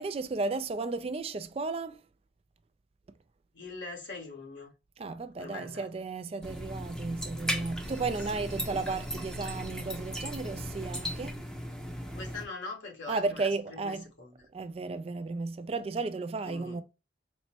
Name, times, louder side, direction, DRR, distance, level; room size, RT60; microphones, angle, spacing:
voice 1, 0.0-2.0 5.0-11.5 13.1-14.0 14.5-16.8, right 3 dB, 30° right, 0.3 m, -34 dB
voice 2, 3.5-4.7 5.4-5.9 7.6-7.7 8.2-8.5 11.0-11.2 12.1-14.4 16.4-16.8, left 3 dB, 75° left, 1.5 m, -43 dB
sound 1, 6.4-12.4, equal, 5° left, 0.6 m, -37 dB
4.2 x 2.1 x 4.3 m
head